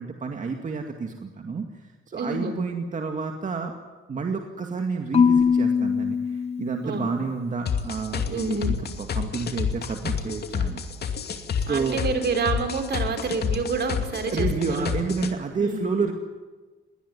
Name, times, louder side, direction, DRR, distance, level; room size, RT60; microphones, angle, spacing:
voice 1, 0.0-3.7 4.1-11.2 11.7-12.0 14.2-16.1, right 4 dB, 40° right, 4 dB, 2.2 m, -30 dB
voice 2, 2.2-2.6 6.8-7.2 8.3-8.8 11.7-15.1 15.6-15.9, right 4 dB, 60° right, 7 dB, 4.0 m, -28 dB
Marimba xylophone / Wood, 5.1-7.3, left 6 dB, 30° left, 0.8 m, -22 dB
sound 1, 7.7-15.3, left 7 dB, 55° left, 2.5 m, -28 dB
20.5 x 19.0 x 9.8 m, 1.3 s
cardioid pair, 90°, 20 cm